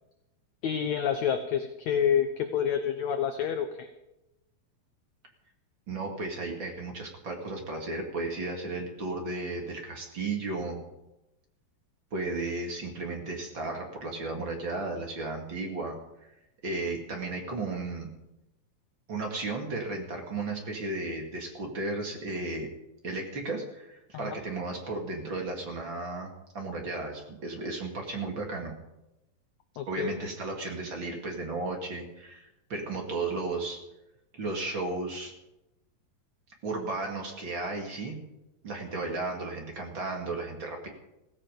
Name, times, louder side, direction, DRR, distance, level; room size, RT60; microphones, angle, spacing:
voice 1, 0.6-3.9 24.1-24.4 29.8-30.2, left 8 dB, 70° left, 7 dB, 1.8 m, -28 dB
voice 2, 5.9-10.8 12.1-15.9 16.6-18.1 19.1-22.7 23.0-26.3 26.5-28.7 29.9-33.8 34.3-35.3 36.6-38.2 38.6-40.9, right 3 dB, 35° right, 2 dB, 2.7 m, -34 dB
16.5 x 15.5 x 5.2 m, 0.92 s
omnidirectional pair, 4.2 m